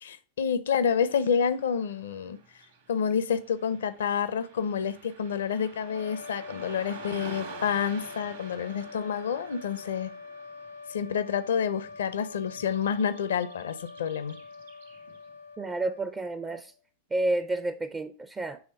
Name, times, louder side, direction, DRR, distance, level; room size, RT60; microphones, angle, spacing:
voice 1, 0.0-2.4 2.9-10.1 10.9-14.4, left 7 dB, 65° left, 0.5 m, -28 dB
Car passing by / Traffic noise roadway noise, 1.1-15.4, right 5 dB, 65° right, 1.3 m, -49 dB
sound 1, 5.8-16.8, left 4 dB, 90° right, 0.6 m, -45 dB
voice 2, 15.6-16.7 17.1-18.6, right 2 dB, 15° right, 0.4 m, -30 dB
7.1 x 3.4 x 4.1 m
figure-of-eight pair, 90°, 0 cm